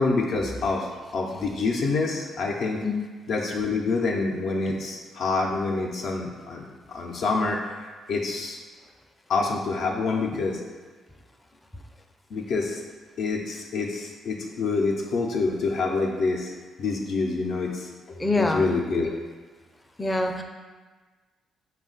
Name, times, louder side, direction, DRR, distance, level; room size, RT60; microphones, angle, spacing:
voice 1, 0.0-2.8 3.3-7.6 8.1-8.6 9.3-10.6 12.3-12.8 13.2-16.5 16.8-19.2, left 3 dB, 65° left, 0 dB, 0.5 m, -27 dB
voice 2, 18.2-18.6 20.0-20.4, left 2 dB, 15° left, 4 dB, 0.4 m, -24 dB
4.9 x 2.2 x 3.8 m, 1.4 s
cardioid pair, 90°, 0 cm